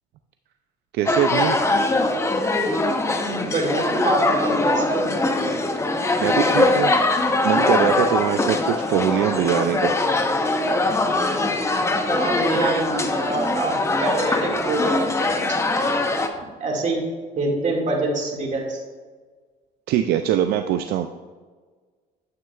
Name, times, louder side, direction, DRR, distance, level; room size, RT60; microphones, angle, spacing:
voice 1, 0.9-1.6 6.2-6.9 7.4-10.0 19.9-21.1, right 10 dB, 75° right, 7 dB, 0.4 m, -22 dB
sound 1, 1.1-16.3, left 2 dB, 15° left, 0.7 m, -22 dB
voice 2, 3.2-5.1 12.1-15.3 16.6-17.0 17.4-18.8, right 3 dB, 45° right, 0 dB, 2.0 m, -26 dB
9.4 x 7.4 x 2.3 m, 1.4 s
cardioid pair, 110°, 17 cm